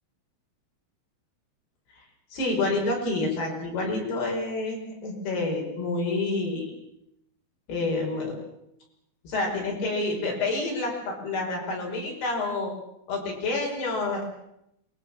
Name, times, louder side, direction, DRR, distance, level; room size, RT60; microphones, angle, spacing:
voice 1, 2.3-6.7 7.7-8.4 9.2-12.7 13.1-14.2, left 2 dB, 90° left, -1 dB, 7.6 m, -28 dB
27.5 x 22.0 x 7.4 m, 0.81 s
omnidirectional pair, 4.4 m